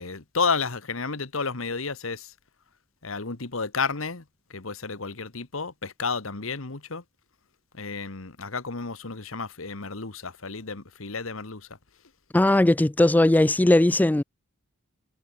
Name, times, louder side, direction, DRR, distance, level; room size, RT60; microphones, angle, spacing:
voice 1, 0.0-2.3 3.0-4.2 4.5-7.0 7.7-11.7, left 4 dB, 70° left, 1.7 m, -31 dB
voice 2, 12.3-14.2, left 1 dB, 10° left, 0.3 m, -19 dB
head